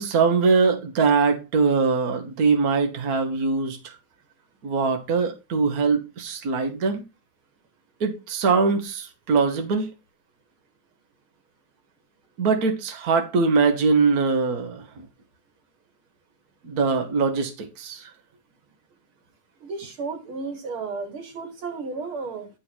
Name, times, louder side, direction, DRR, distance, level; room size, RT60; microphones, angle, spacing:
voice 1, 0.0-4.0 4.6-7.0 8.0-9.9 12.4-14.9 16.6-18.1, right 4 dB, 50° right, 1.7 m, -22 dB
voice 2, 19.6-22.5, right 4 dB, 80° right, 2.6 m, -33 dB
11.0 x 3.8 x 6.2 m
omnidirectional pair, 2.3 m